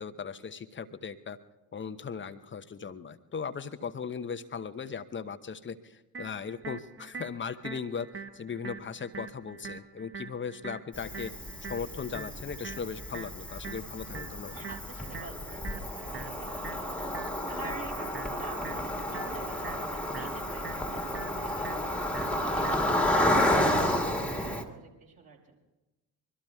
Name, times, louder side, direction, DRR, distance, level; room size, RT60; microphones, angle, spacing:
voice 1, 0.0-1.4 1.7-11.3 11.7-14.7, left 6 dB, 25° left, 11 dB, 0.9 m, -38 dB
sound 1, 6.1-24.1, right 5 dB, 25° right, 1.1 m, -45 dB
Cricket, 10.9-24.6, left 1 dB, ahead, 1.8 m, -31 dB
voice 2, 14.5-17.1 17.4-25.6, right 4 dB, 45° right, -2 dB, 5.1 m, -48 dB
25.0 x 23.5 x 2.3 m, 1.1 s
figure-of-eight pair, 40°, 48 cm